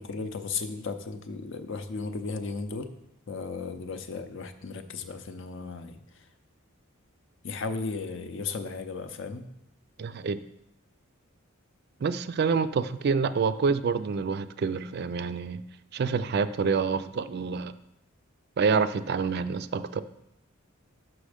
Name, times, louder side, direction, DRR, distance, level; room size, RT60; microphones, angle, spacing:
voice 1, 0.0-2.9 3.3-6.3 7.4-9.5, left 4 dB, 60° left, 9 dB, 0.6 m, -35 dB
voice 2, 10.0-10.4 12.0-15.6 15.9-17.7 18.6-20.0, right 5 dB, 50° right, 13 dB, 0.4 m, -27 dB
6.2 x 6.0 x 5.0 m, 0.82 s
head